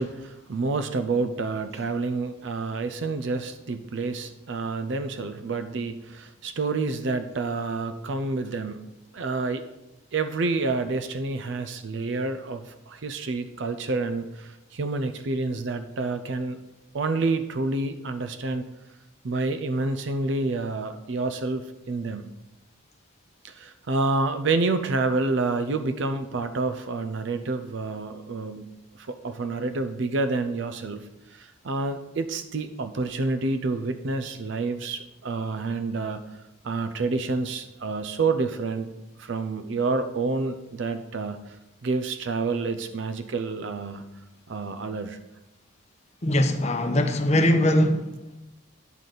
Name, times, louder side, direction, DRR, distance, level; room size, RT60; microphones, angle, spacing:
voice 1, 0.0-8.8 9.1-9.6 10.1-16.6 16.9-18.7 19.2-22.3 23.4-28.7 28.9-38.9 39.2-44.0 44.5-45.2, right 3 dB, 60° right, 9 dB, 0.5 m, -28 dB
voice 2, 46.2-48.1, left 1 dB, 30° left, 6 dB, 0.7 m, -21 dB
9.1 x 4.0 x 6.6 m, 0.92 s
head